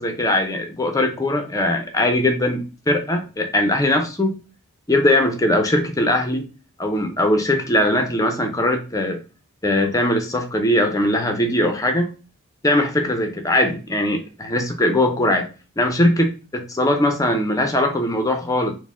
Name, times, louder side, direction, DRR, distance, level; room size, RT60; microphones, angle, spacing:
voice 1, 0.0-4.4 4.9-6.5 6.8-9.2 9.6-12.1 12.6-15.5 15.8-18.7, left 1 dB, 15° left, 4 dB, 0.5 m, -20 dB
4.2 x 2.1 x 3.6 m, 0.33 s
head